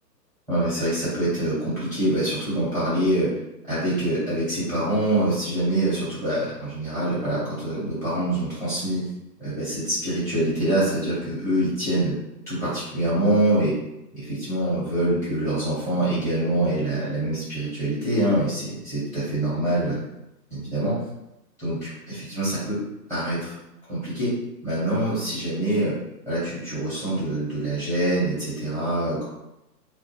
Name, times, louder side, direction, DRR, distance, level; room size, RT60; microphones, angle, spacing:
voice 1, 0.5-3.3 3.6-9.1 9.4-12.1 12.5-13.7 14.1-20.0 20.5-20.9 21.6-22.7 23.1-23.5 23.9-24.3 24.6-25.9 26.2-29.2, right 1 dB, 5° left, -11 dB, 1.2 m, -25 dB
2.2 x 2.1 x 3.1 m, 0.88 s
figure-of-eight pair, 130°, 50 cm